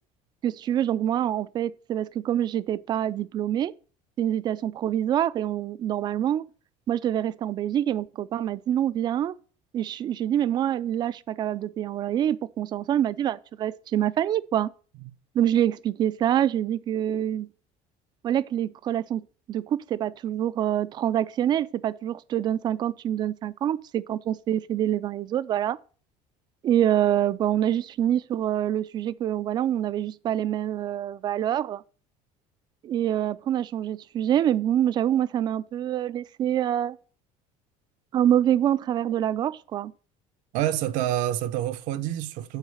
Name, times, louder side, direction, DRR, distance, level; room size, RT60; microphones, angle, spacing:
voice 1, 0.4-3.7 4.2-6.4 6.9-9.4 9.7-14.7 15.3-17.5 18.2-19.2 19.5-25.8 26.6-31.8 32.8-37.0 38.1-39.9, right 11 dB, 30° right, 0.4 m, -26 dB
voice 2, 40.5-42.6, right 12 dB, 65° right, 0.7 m, -27 dB
8.0 x 4.7 x 7.1 m
cardioid pair, 170°, 14 cm